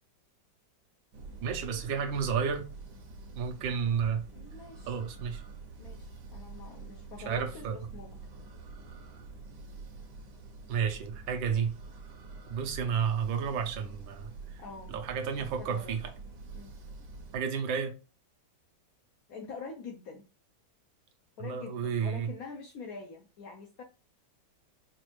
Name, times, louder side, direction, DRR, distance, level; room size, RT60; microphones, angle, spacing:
sound 1, 1.1-17.4, right 4 dB, 65° right, 1.3 m, -46 dB
voice 1, 1.4-2.6 3.4-4.2 4.9-5.4 7.2-7.8 10.7-11.7 12.5-14.6 14.9-16.0 17.3-17.9 21.4-22.3, right 7 dB, 80° right, 1.5 m, -31 dB
voice 2, 4.3-5.0 5.8-8.2 14.6-14.9 15.4-16.0 16.5-16.8 19.3-20.2 21.4-23.8, left 4 dB, 70° left, 0.8 m, -45 dB
5.0 x 2.4 x 3.1 m
omnidirectional pair, 2.1 m